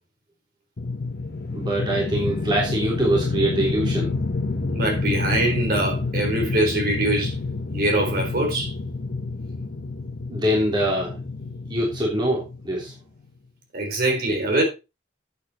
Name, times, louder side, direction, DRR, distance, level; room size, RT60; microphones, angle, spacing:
sound 1, 0.8-13.0, left 3 dB, 55° left, 0.8 m, -28 dB
voice 1, 1.5-4.1 10.3-11.1 11.7-12.9, right 1 dB, 25° right, 3.3 m, -24 dB
voice 2, 4.7-7.3 7.7-8.7 13.7-14.6, right 1 dB, 50° right, 3.9 m, -23 dB
8.7 x 8.6 x 4.3 m
head